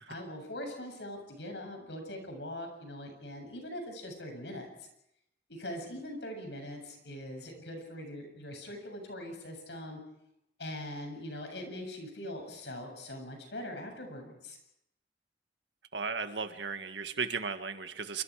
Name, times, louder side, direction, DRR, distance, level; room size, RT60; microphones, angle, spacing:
voice 1, 0.1-4.9 5.5-10.0 10.6-14.6, left 1 dB, 75° left, 4 dB, 7.7 m, -42 dB
voice 2, 15.9-18.2, right 5 dB, 85° right, 8 dB, 1.8 m, -35 dB
28.0 x 25.5 x 5.0 m, 0.80 s
head